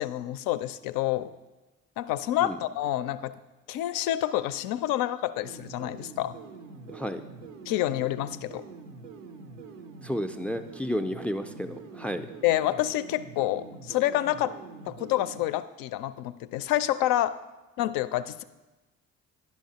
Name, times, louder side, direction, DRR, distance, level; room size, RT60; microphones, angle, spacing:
voice 1, 0.0-1.3 2.0-3.3 3.7-6.3 7.7-8.6 12.4-14.5 14.9-17.3 17.8-18.4, left 13 dB, 60° left, 13 dB, 0.5 m, -28 dB
sound 1, 5.4-15.4, right 4 dB, 85° right, 0.6 m, -45 dB
voice 2, 6.9-7.2 10.0-12.3, equal, 5° left, 9 dB, 0.4 m, -32 dB
10.5 x 5.8 x 2.8 m, 1.1 s
hypercardioid pair, 45°, 38 cm